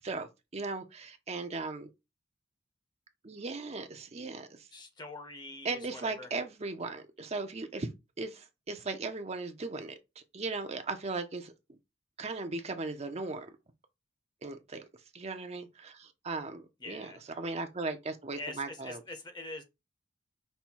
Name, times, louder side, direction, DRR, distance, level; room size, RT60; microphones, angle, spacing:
voice 1, 0.0-1.9 3.2-4.7 5.6-7.9 8.2-11.5 12.2-13.5 14.4-14.8 15.1-19.0, right 3 dB, 35° right, 0.6 m, -37 dB
voice 2, 4.7-6.3 16.8-17.2 18.4-19.6, left 2 dB, 20° left, 0.8 m, -44 dB
5.4 x 2.2 x 4.4 m
head